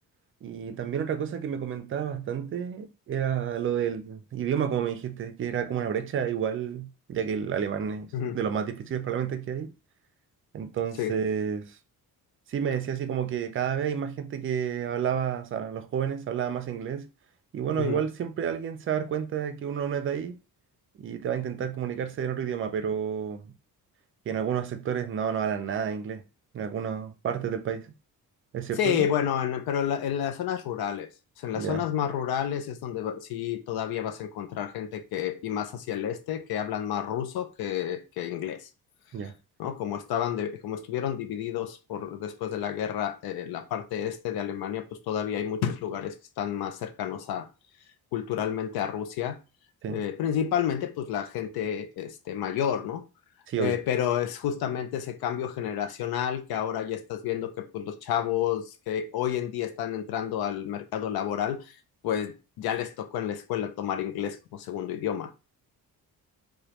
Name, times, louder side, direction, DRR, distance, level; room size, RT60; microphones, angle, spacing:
voice 1, 0.4-9.7 10.5-11.7 12.5-17.1 17.5-20.3 21.0-23.5 24.3-26.2 26.5-27.9 28.5-29.1 31.6-31.8 39.1-39.4 49.8-50.0 53.5-53.8, right 8 dB, 35° right, 0.4 m, -30 dB
voice 2, 28.8-31.1 31.4-38.7 39.6-47.5 48.1-49.4 49.9-53.0 53.6-61.7 62.0-65.3, left 9 dB, 90° left, 0.6 m, -30 dB
5.0 x 2.3 x 2.9 m
cardioid pair, 180°, 36 cm